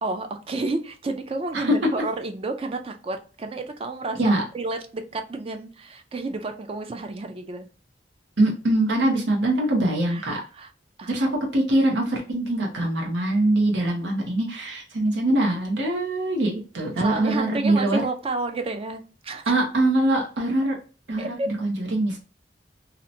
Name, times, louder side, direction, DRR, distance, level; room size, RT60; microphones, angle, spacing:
voice 1, 0.0-7.7 10.1-10.7 11.0-11.1 16.9-19.5 21.2-21.5, right 2 dB, 30° right, 6 dB, 0.4 m, -31 dB
voice 2, 8.4-10.4 11.1-18.0 19.5-20.8 21.1-22.2, right 1 dB, 85° right, 0 dB, 0.7 m, -23 dB
2.8 x 2.1 x 2.6 m, 0.35 s
head